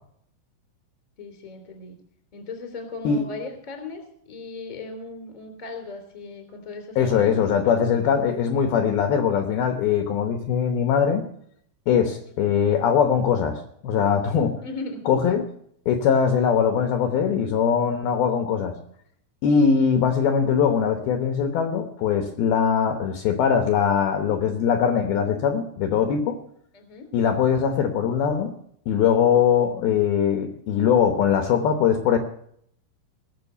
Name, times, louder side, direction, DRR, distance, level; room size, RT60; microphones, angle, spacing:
voice 1, 1.2-2.0 2.3-7.3 12.2-12.3 14.6-15.0 26.7-27.1, left 3 dB, 15° left, 5 dB, 1.7 m, -37 dB
voice 2, 7.0-11.2 11.9-14.5 15.1-15.4 15.9-18.7 19.4-26.4 27.1-28.5 28.9-32.2, left 7 dB, 75° left, 6 dB, 2.2 m, -21 dB
20.0 x 7.1 x 6.8 m, 0.68 s
omnidirectional pair, 5.9 m